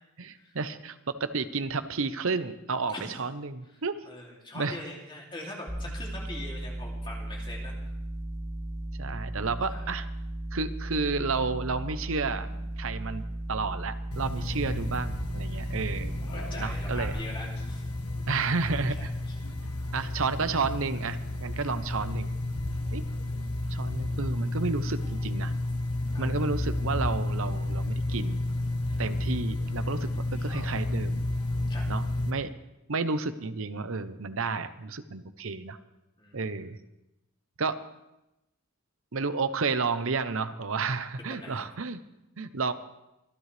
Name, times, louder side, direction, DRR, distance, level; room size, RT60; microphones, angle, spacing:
voice 1, 0.2-4.0 4.5-4.8 9.0-10.1 10.5-12.5 12.8-16.1 16.6-17.2 18.3-19.1 19.9-22.3 22.9-23.0 23.7-25.5 26.2-28.4 29.0-31.2 31.9-32.5 32.9-35.8 36.3-36.8 37.6-37.8 39.1-42.0 42.4-42.7, right 4 dB, 65° right, 11 dB, 0.8 m, -31 dB
voice 2, 4.0-7.7 9.7-9.8 15.5-15.8 16.3-17.9 18.9-19.6 26.1-26.3 28.8-29.1 31.7-31.9 36.2-36.4 41.2-41.7, left 1 dB, 20° left, -2 dB, 2.8 m, -43 dB
sound 1, 5.7-17.1, right 1 dB, ahead, 2.0 m, -36 dB
sound 2, 14.1-32.3, left 2 dB, 85° left, 1.4 m, -32 dB
25.0 x 11.0 x 3.4 m, 0.93 s
head